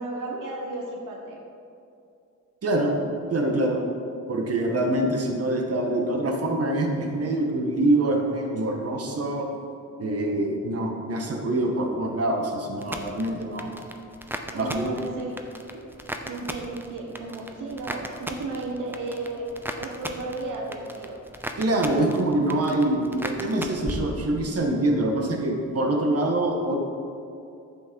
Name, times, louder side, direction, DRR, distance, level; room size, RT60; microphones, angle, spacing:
voice 1, 0.0-1.4 4.6-4.7 14.5-15.3 15.7-15.9 16.3-21.2, right 2 dB, 80° right, 1 dB, 1.2 m, -34 dB
voice 2, 3.3-3.8 4.3-9.5 10.0-13.7 14.5-15.0 21.6-26.8, right 1 dB, 50° right, 1 dB, 1.7 m, -25 dB
sound 1, 12.8-24.7 25.0-25.6, right 1 dB, 5° right, 0.9 m, -37 dB
11.0 x 8.1 x 4.7 m, 2.5 s
cardioid pair, 90°, 31 cm